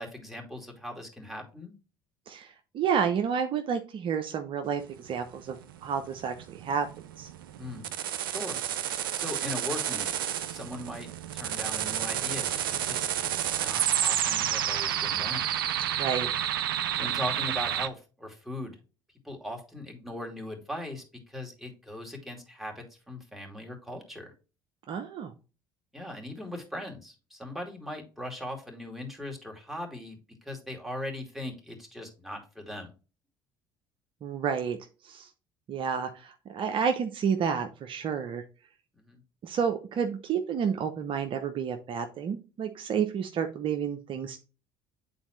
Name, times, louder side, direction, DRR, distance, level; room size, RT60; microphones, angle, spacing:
voice 1, 0.0-1.7 7.6-7.8 8.2-8.6 9.1-10.2 10.5-11.1 11.3-15.4 17.0-18.8 19.2-24.3 25.9-32.9 39.0-39.2, left 1 dB, ahead, 1 dB, 2.5 m, -39 dB
voice 2, 2.3-5.6 5.8-6.9 7.2-7.3 16.0-16.3 24.9-25.3 34.2-34.8 35.0-35.3 35.7-38.4 39.4-44.4, right 7 dB, 50° right, 6 dB, 0.7 m, -30 dB
sound 1, 4.9-17.9, right 10 dB, 80° right, 0.4 m, -30 dB
8.9 x 4.1 x 3.1 m, 0.33 s
hypercardioid pair, 60°, 11 cm